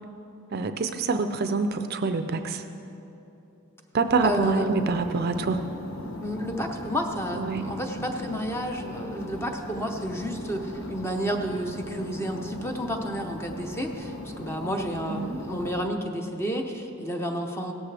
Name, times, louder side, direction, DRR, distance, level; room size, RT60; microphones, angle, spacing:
voice 1, 0.5-2.6 3.9-5.6 7.3-7.7 15.1-15.4, right 4 dB, 45° right, 8 dB, 0.5 m, -26 dB
sound 1, 4.1-15.8, left 1 dB, 65° left, 1.1 m, -38 dB
voice 2, 4.2-4.7 6.2-17.7, equal, 10° left, 3 dB, 0.8 m, -31 dB
16.5 x 13.5 x 3.4 m, 2.9 s
head